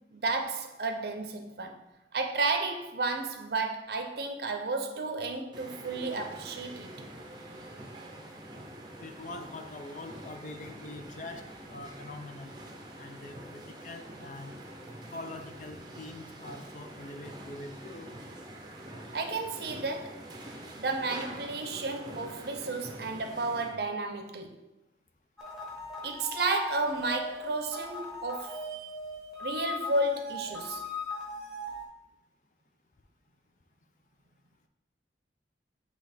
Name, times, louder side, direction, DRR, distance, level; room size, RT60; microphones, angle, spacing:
voice 1, 0.0-1.8 2.1-6.9 19.1-20.3 20.8-24.6 26.0-28.6 29.4-30.8, right 3 dB, 60° right, 0.6 m, -32 dB
sound 1, 5.5-23.8, right 1 dB, 25° right, 0.7 m, -46 dB
voice 2, 9.0-11.4 11.7-12.5 13.0-14.5 15.1-18.1, left 2 dB, 45° left, 0.5 m, -44 dB
sound 2, 25.4-31.8, left 2 dB, ahead, 1.2 m, -39 dB
7.9 x 2.9 x 4.3 m
head